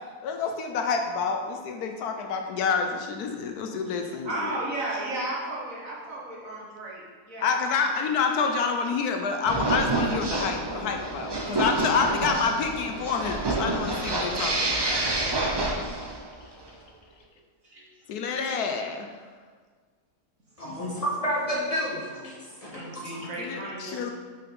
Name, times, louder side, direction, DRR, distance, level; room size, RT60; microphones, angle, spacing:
voice 1, 0.2-4.5 7.4-14.8 18.1-19.1 23.4-24.1, left 5 dB, 75° left, 4 dB, 1.2 m, -28 dB
voice 2, 4.2-8.0 11.4-11.6 16.6-16.7 17.2-17.3 17.6-18.5 22.7-24.1, right 2 dB, 60° right, -4 dB, 2.0 m, -35 dB
sound 1, 9.5-16.3, right 2 dB, 40° right, 0.3 m, -28 dB
voice 3, 20.6-23.3, equal, 25° left, -5 dB, 1.6 m, -31 dB
5.7 x 5.6 x 5.4 m, 1.5 s
omnidirectional pair, 1.7 m